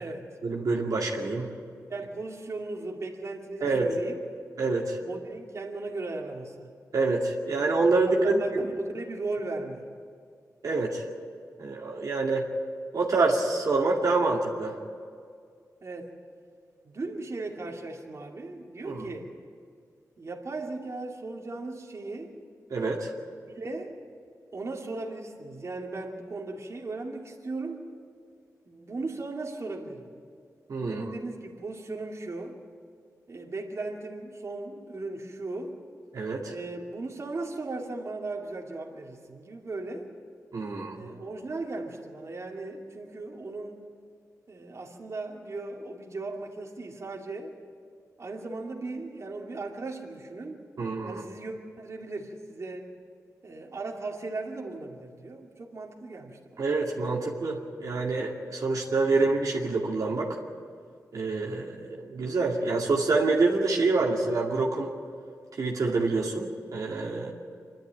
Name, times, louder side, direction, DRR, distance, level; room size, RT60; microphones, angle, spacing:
voice 1, 0.4-1.5 3.6-3.9 4.6-5.0 6.9-8.7 10.6-11.0 11.6-12.5 12.9-14.8 18.8-19.0 22.7-23.1 30.7-31.0 36.1-36.5 40.5-41.0 50.8-51.2 56.6-60.4 61.1-64.9 65.6-67.3, right 3 dB, 70° right, -2 dB, 2.3 m, -26 dB
voice 2, 1.9-4.2 5.0-6.7 8.2-9.9 15.8-16.1 16.8-19.3 20.2-22.3 23.5-23.9 24.5-27.9 28.7-30.1 30.8-32.6 33.3-35.8 36.5-40.1 40.9-43.8 44.5-47.6 48.2-50.6 51.1-52.9 53.4-56.6, right 3 dB, 50° right, 0 dB, 2.4 m, -37 dB
26.5 x 12.0 x 8.9 m, 2.2 s
wide cardioid pair, 85°, 6 cm